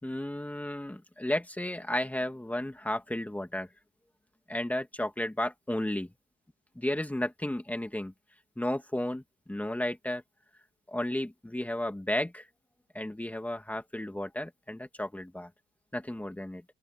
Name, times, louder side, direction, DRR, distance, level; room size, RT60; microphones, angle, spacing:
voice 1, 0.0-3.7 4.5-6.1 6.8-8.1 8.6-10.2 10.9-12.5 12.9-15.5 15.9-16.6, left 1 dB, 5° left, 2.5 m, -33 dB
open air
cardioid pair, 90°, 20 cm